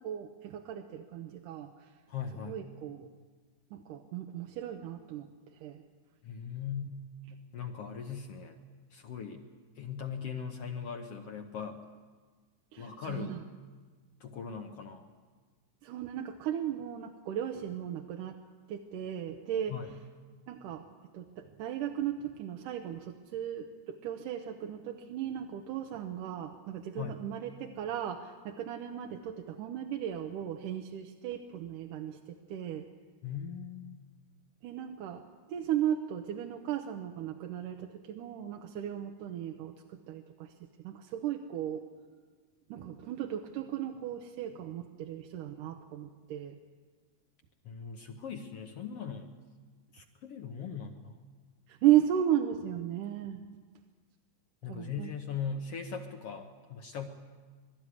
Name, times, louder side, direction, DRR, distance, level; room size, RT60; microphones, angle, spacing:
voice 1, 0.0-1.9 2.5-3.1 3.7-5.8 12.7-13.4 15.8-18.4 18.7-19.8 20.5-20.9 21.1-32.9 34.6-35.2 35.5-41.8 42.7-46.6 51.7-53.4 54.7-55.1, right 11 dB, 85° right, 4 dB, 2.4 m, -35 dB
voice 2, 2.1-2.6 6.2-7.1 7.5-8.6 8.9-9.4 9.8-11.8 12.8-13.4 14.2-15.1 19.7-19.9 27.0-27.2 33.2-34.0 47.7-49.3 49.9-51.2 54.6-57.1, left 6 dB, 65° left, 4 dB, 1.7 m, -39 dB
23.0 x 13.0 x 9.7 m, 1.5 s
omnidirectional pair, 3.7 m